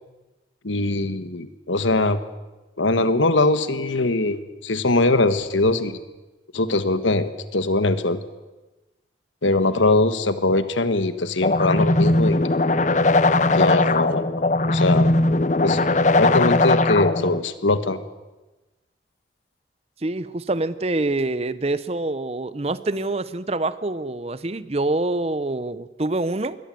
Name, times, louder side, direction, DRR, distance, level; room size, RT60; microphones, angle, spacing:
voice 1, 0.6-2.2 2.8-6.0 6.5-8.2 9.4-12.4 13.5-14.3 14.6-15.1 15.6-15.8 16.2-18.0, left 2 dB, 90° left, 12 dB, 1.5 m, -21 dB
sound 1, 11.4-17.4, left 2 dB, 40° left, 0.7 m, -19 dB
voice 2, 20.0-26.6, right 2 dB, 35° right, 16 dB, 0.7 m, -26 dB
23.0 x 18.0 x 7.7 m, 1.1 s
head